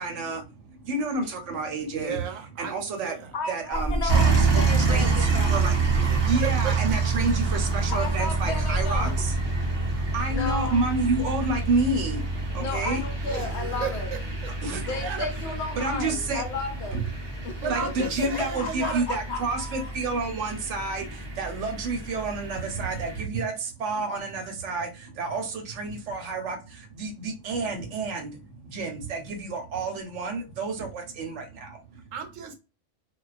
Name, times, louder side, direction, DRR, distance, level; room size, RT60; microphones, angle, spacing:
voice 1, 0.0-2.2 2.6-3.1 3.5-4.5 4.9-5.7 6.2-9.4 9.9-13.0 14.6-15.1 15.8-16.4 16.9-32.0, right 3 dB, 70° right, 1.0 m, -30 dB
voice 2, 1.9-3.4 6.0-6.7 7.2-7.3 9.9-10.0 11.2-11.3 13.3-15.3 17.6-19.0 32.1-32.5, right 7 dB, 90° right, 1.0 m, -35 dB
voice 3, 3.3-5.6 7.9-9.3 10.3-10.8 12.6-14.1 14.9-17.1 17.4-19.9, left 3 dB, 65° left, 0.9 m, -34 dB
sound 1, 3.7-10.6, right 1 dB, 25° left, 0.8 m, -33 dB
sound 2, 4.1-23.2, right 4 dB, 30° right, 0.6 m, -27 dB
2.3 x 2.3 x 2.3 m
omnidirectional pair, 1.3 m